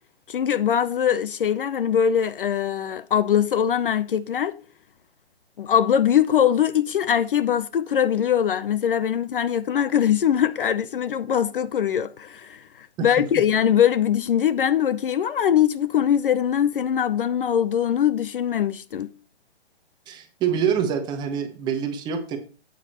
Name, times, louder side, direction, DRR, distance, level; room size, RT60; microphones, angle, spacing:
voice 1, 0.3-4.6 5.6-19.1, left 9 dB, 55° left, 0.5 m, -22 dB
voice 2, 20.1-22.4, right 8 dB, 15° right, 0.8 m, -25 dB
8.4 x 8.3 x 2.9 m
figure-of-eight pair, 135°, 33 cm